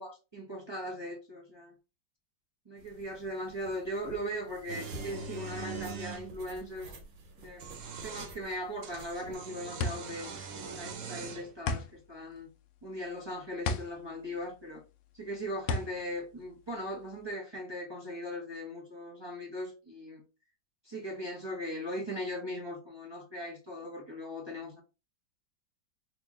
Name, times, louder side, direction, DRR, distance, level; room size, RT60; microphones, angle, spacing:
voice 1, 0.0-1.7 2.6-6.9 7.4-7.7 8.0-10.3 10.7-12.5 12.8-14.8 15.1-20.2 20.8-24.8, equal, 25° right, 0.5 m, -39 dB
sound 1, 2.8-9.3, right 2 dB, 80° right, 1.7 m, -50 dB
sound 2, 4.7-6.2 7.4-8.3 8.8-11.5, right 5 dB, 60° right, 0.8 m, -42 dB
sound 3, 9.1-17.3, left 4 dB, 75° left, 0.7 m, -37 dB
3.0 x 2.9 x 3.5 m
omnidirectional pair, 2.0 m